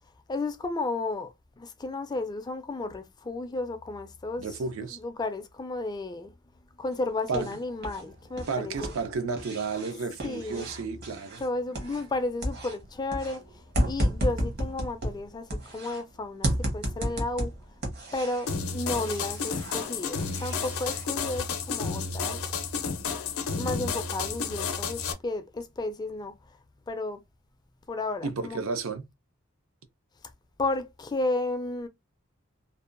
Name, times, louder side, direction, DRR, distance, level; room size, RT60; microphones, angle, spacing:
voice 1, 0.3-4.5 4.9-6.3 6.8-9.0 10.2-10.7 11.4-17.5 18.1-22.4 23.5-26.3 26.9-27.2 27.9-28.6 30.6-31.9, left 2 dB, 20° left, 0.3 m, -33 dB
voice 2, 4.4-5.0 7.3-7.5 8.5-11.4 28.2-29.1, right 4 dB, 75° right, 0.5 m, -32 dB
sound 1, 6.9-8.0 8.3-12.2 12.4-16.0 16.4-18.5 18.9-21.0, equal, 50° right, 1.0 m, -33 dB
sound 2, 18.5-25.1, left 5 dB, 85° left, 0.5 m, -31 dB
2.6 x 2.2 x 2.4 m
head